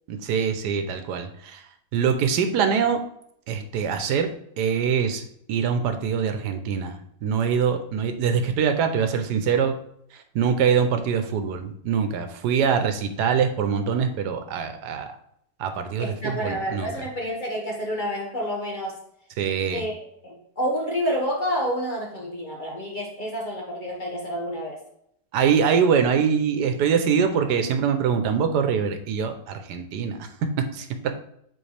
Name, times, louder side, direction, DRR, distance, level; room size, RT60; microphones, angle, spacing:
voice 1, 0.1-1.6 1.9-3.0 3.5-4.3 4.6-9.8 10.3-15.1 15.6-16.9 19.4-19.8 25.3-31.1, right 7 dB, 90° right, 8 dB, 1.3 m, -24 dB
voice 2, 16.0-19.0 19.7-24.8, equal, 30° left, -1 dB, 1.4 m, -29 dB
7.9 x 4.0 x 3.3 m, 0.72 s
omnidirectional pair, 1.7 m